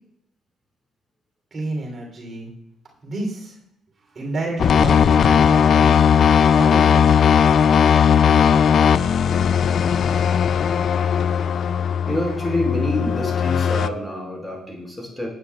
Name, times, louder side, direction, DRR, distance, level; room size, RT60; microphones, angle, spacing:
voice 1, 1.5-2.5 3.0-3.6 4.1-6.0 6.5-7.1, right 2 dB, 45° right, 0 dB, 3.1 m, -30 dB
Mysteron Drone by Peng Punker, 4.6-13.9, left 7 dB, 60° left, 0.4 m, -17 dB
voice 2, 12.1-15.3, left 1 dB, 10° left, -1 dB, 5.0 m, -26 dB
19.0 x 8.9 x 2.3 m, 0.70 s
cardioid pair, 90°, 0 cm